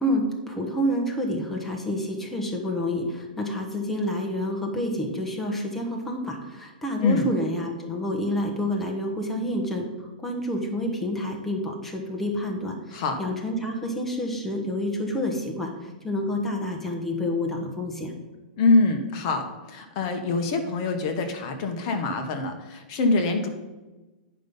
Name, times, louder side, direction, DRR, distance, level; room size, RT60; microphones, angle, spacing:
voice 1, 0.0-18.1, left 1 dB, 5° left, 0 dB, 1.1 m, -28 dB
voice 2, 18.6-23.5, left 3 dB, 40° left, 6 dB, 1.1 m, -24 dB
9.8 x 5.3 x 5.4 m, 1.1 s
hypercardioid pair, 160°, 5 cm